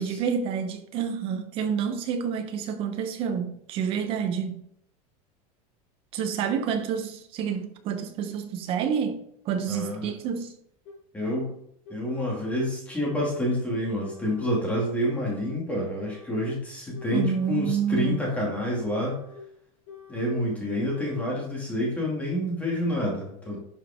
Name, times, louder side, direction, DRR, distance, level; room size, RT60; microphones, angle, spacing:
voice 1, 0.0-4.6 6.1-10.6 17.1-18.3, right 7 dB, 30° right, 1.0 m, -28 dB
voice 2, 9.7-10.1 11.1-11.5 11.9-19.2 20.1-23.6, left 1 dB, 5° left, 2.5 m, -28 dB
sound 1, 9.9-10.0 10.9-11.0 11.9-12.6 13.0-13.6 14.0-14.6 15.0-15.6 16.0-16.5 16.9-17.5 17.9-18.5 18.9-19.4 19.9-20.4 20.8-21.4, left 5 dB, 40° left, 3.0 m, -46 dB
11.0 x 5.8 x 3.7 m
supercardioid pair, 180°, 18 cm